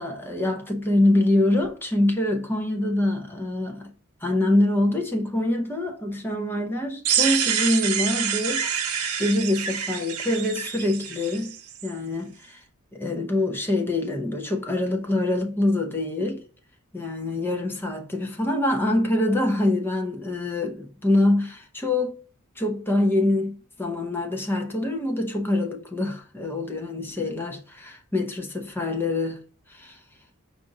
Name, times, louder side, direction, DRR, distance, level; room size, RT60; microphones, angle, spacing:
voice 1, 0.0-3.9 4.2-11.5 11.8-12.6 12.9-16.4 16.9-22.2 22.6-29.4 29.7-30.0, left 1 dB, 10° left, 0.7 m, -25 dB
sound 1, 7.0-11.9, right 7 dB, 80° right, 0.8 m, -27 dB
5.1 x 2.6 x 4.0 m
head